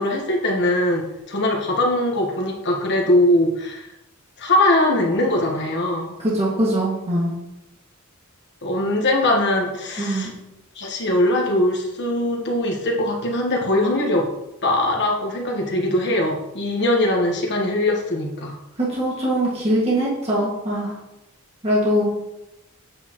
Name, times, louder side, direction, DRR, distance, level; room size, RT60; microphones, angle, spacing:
voice 1, 0.0-3.9 4.4-6.1 8.6-10.3 10.7-14.3 14.6-18.6, left 1 dB, 55° left, 0 dB, 1.4 m, -21 dB
voice 2, 6.2-7.4 10.0-10.3 18.8-20.9 21.6-22.1, right 1 dB, 30° right, -6 dB, 2.0 m, -22 dB
8.4 x 6.3 x 3.1 m, 0.91 s
head